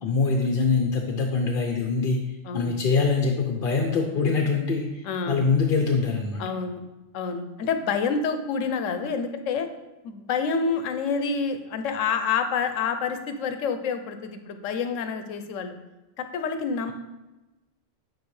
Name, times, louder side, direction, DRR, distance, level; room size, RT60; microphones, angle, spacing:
voice 1, 0.0-2.2 2.5-6.4, left 4 dB, 55° left, 2 dB, 0.7 m, -24 dB
voice 2, 5.0-5.5 6.4-6.8 7.1-9.7 10.0-15.8 16.2-16.9, left 5 dB, 90° left, 8 dB, 1.0 m, -28 dB
8.2 x 4.6 x 3.2 m, 1.1 s
omnidirectional pair, 1.3 m